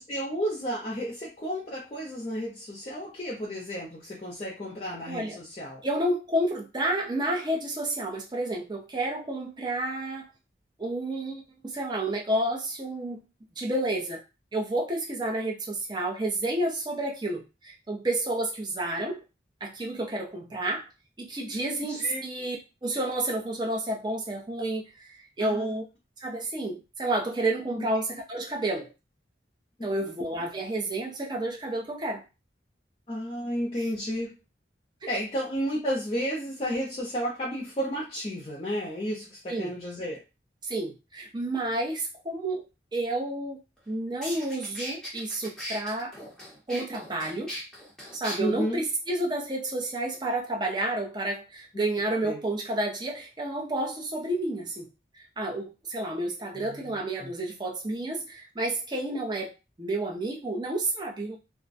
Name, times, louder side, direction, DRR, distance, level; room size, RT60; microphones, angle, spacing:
voice 1, 0.1-5.8 21.7-22.2 25.4-25.7 27.8-27.9 33.1-34.4 35.1-40.2 48.4-48.8 51.7-51.8 52.2-52.4 56.5-57.3, equal, 30° left, -5 dB, 0.5 m, -32 dB
voice 2, 5.1-5.4 5.8-10.3 10.8-13.2 13.6-14.2 14.5-19.2 19.6-20.9 21.2-22.6 22.8-25.1 25.4-25.8 26.2-28.9 29.8-32.2 39.5-39.7 40.6-42.6 42.9-43.6 43.9-46.1 46.7-47.5 48.1-54.9 55.1-59.5 59.8-61.4, right 1 dB, 25° right, -1 dB, 0.5 m, -30 dB
sound 1, 43.8-43.9 44.2-48.4, equal, 5° left, 0.8 m, -38 dB
2.3 x 2.1 x 2.6 m, 0.28 s
head